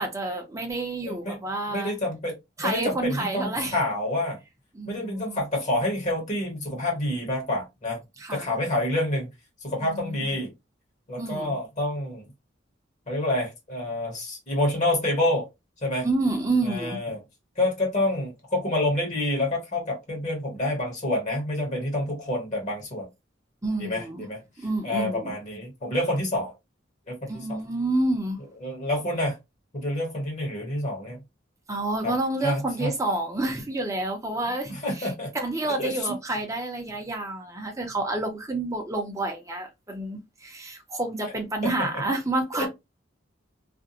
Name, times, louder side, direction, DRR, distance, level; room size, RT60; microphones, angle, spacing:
voice 1, 0.0-1.9 2.6-3.8 4.7-5.4 8.2-8.5 9.8-10.3 11.2-11.6 16.0-17.2 23.6-24.3 24.6-25.3 27.3-28.4 31.7-42.7, right 2 dB, 15° right, 0.6 m, -29 dB
voice 2, 1.1-1.4 1.7-4.4 4.8-8.0 8.3-9.3 9.6-10.5 11.1-12.3 13.1-15.5 15.8-16.1 16.6-17.2 17.6-23.1 23.8-24.4 24.8-26.5 27.1-27.6 28.6-29.4 29.7-31.2 32.0-32.1 32.4-32.9 34.7-35.3 35.8-36.1 41.6-42.0 42.6-42.7, left 1 dB, 40° left, 1.1 m, -28 dB
2.5 x 2.2 x 2.7 m
head